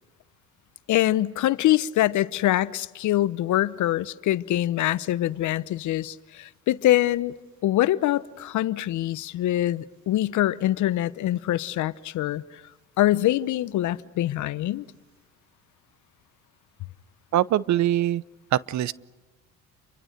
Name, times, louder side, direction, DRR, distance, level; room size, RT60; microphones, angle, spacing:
voice 1, 0.9-7.3 7.6-12.6 13.0-14.8, left 14 dB, 60° left, 0.9 m, -24 dB
voice 2, 17.3-18.2 18.5-18.9, right 13 dB, 55° right, 0.8 m, -23 dB
29.0 x 24.0 x 6.6 m
supercardioid pair, 75°, 34 cm